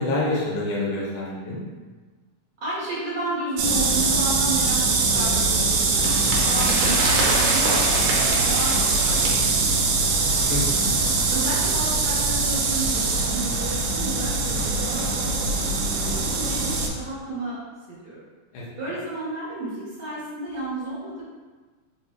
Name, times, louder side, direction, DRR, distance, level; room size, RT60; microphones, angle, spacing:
voice 1, 0.0-1.6 10.5-11.0 18.5-18.6, left 2 dB, 80° left, -4 dB, 2.4 m, -27 dB
voice 2, 2.6-6.2 6.5-10.2 11.3-15.1 15.5-17.6 17.9-18.2 18.8-21.2, right 1 dB, 45° right, -10 dB, 1.4 m, -32 dB
sound 1, 3.6-16.9, right 3 dB, 90° right, 1.4 m, -22 dB
sound 2, 5.2-10.6 10.9-11.0, right 2 dB, 70° right, 1.7 m, -28 dB
5.3 x 2.6 x 3.2 m, 1.4 s
omnidirectional pair, 3.7 m